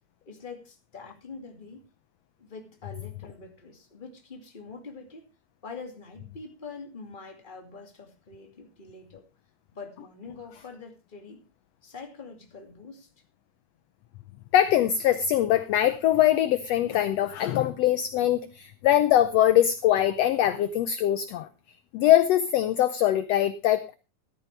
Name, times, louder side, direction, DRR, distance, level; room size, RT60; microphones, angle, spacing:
voice 1, 0.2-1.8 2.4-5.3 5.6-9.3 9.7-11.4 11.8-13.1, left 4 dB, 15° left, 3 dB, 2.0 m, -44 dB
voice 2, 14.5-21.5 21.9-23.9, left 12 dB, 75° left, 12 dB, 1.6 m, -22 dB
14.0 x 13.0 x 3.3 m, 0.30 s
omnidirectional pair, 3.6 m